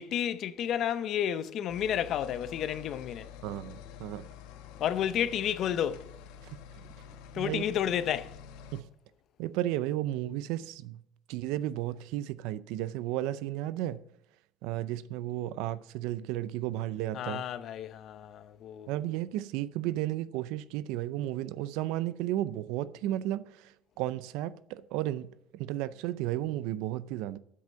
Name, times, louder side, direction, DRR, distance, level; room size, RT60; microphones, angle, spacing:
voice 1, 0.0-3.3 4.8-6.1 7.3-8.3 17.1-18.9, left 9 dB, 50° left, 0.7 m, -31 dB
sound 1, 1.7-8.8, left 8 dB, 85° left, 1.2 m, -48 dB
voice 2, 3.4-4.2 7.3-7.6 8.7-8.8 9.4-11.0 11.3-14.0 14.6-17.4 18.9-23.6 24.0-27.4, right 14 dB, 80° right, 0.5 m, -33 dB
9.4 x 7.7 x 6.9 m
cardioid pair, 135°, 0 cm